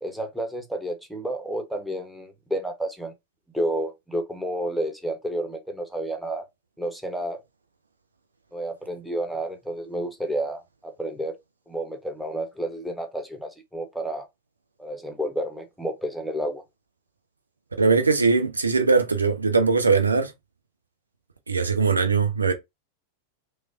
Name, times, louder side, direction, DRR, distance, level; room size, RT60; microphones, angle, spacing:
voice 1, 0.0-3.1 3.5-6.4 6.8-7.4 8.5-11.4 11.7-14.3 14.8-16.6, right 1 dB, ahead, 0.7 m, -30 dB
voice 2, 17.8-20.3 21.5-22.5, right 4 dB, 80° right, 0.4 m, -20 dB
3.1 x 2.1 x 2.6 m
figure-of-eight pair, 90°, 0 cm